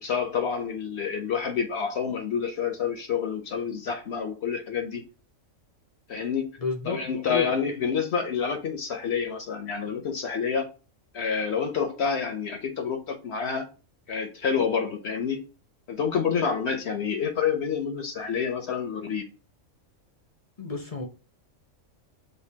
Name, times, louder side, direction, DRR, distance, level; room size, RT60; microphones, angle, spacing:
voice 1, 0.0-5.0 6.1-6.5 6.8-10.7 11.1-13.7 14.1-15.4 15.9-19.2, left 6 dB, 60° left, 0.9 m, -28 dB
voice 2, 6.6-7.0 7.3-7.5 20.6-21.1, left 4 dB, 40° left, 0.6 m, -31 dB
6.6 x 2.6 x 2.7 m
omnidirectional pair, 1.3 m